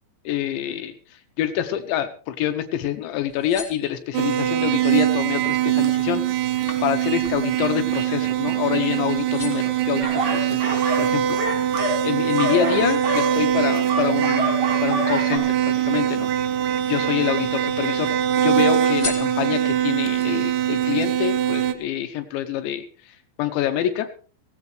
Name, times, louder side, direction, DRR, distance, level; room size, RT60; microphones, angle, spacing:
voice 1, 0.3-6.2 6.8-16.3 16.9-24.1, left 11 dB, 80° left, 7 dB, 3.2 m, -26 dB
sound 1, 3.1-4.4 5.0-5.4 5.7-8.9 9.1-9.9 10.5-12.0 12.4-13.9 14.8-15.9 16.5-17.3 17.6-18.3 18.8-19.9 20.4-20.5, left 4 dB, 15° left, 3.4 m, -40 dB
sound 2, 4.1-21.7, right 10 dB, 85° right, 1.9 m, -22 dB
sound 3, 10.0-11.1 11.4-15.4, right 1 dB, 45° right, 5.8 m, -27 dB
17.5 x 17.0 x 3.2 m, 0.41 s
omnidirectional pair, 5.3 m